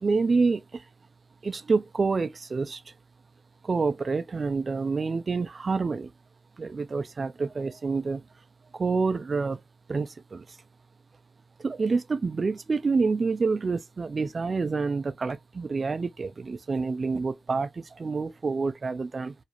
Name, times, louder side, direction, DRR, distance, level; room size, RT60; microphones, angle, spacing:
voice 1, 0.0-0.8 1.4-2.8 3.6-6.1 6.6-8.2 8.7-9.6 9.9-10.4 11.6-19.3, right 4 dB, 50° right, 0.3 m, -27 dB
2.4 x 2.1 x 2.9 m
supercardioid pair, 45°, 0 cm